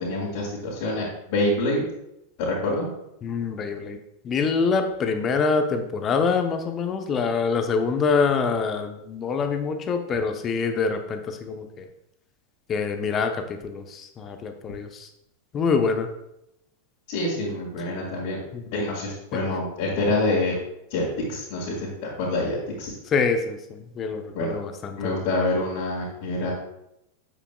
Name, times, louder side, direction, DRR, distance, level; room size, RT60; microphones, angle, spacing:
voice 1, 0.0-1.8 2.4-2.9 17.1-18.4 18.7-20.6 20.9-22.9 24.3-24.6 25.0-26.5, left 2 dB, 50° left, -5 dB, 2.3 m, -26 dB
voice 2, 3.2-4.0 4.2-11.8 12.7-15.1 15.5-16.1 18.5-18.6 19.3-19.4 23.1-25.1, left 5 dB, 25° left, 6 dB, 0.9 m, -25 dB
9.0 x 8.2 x 2.3 m, 0.82 s
figure-of-eight pair, 90°, 0 cm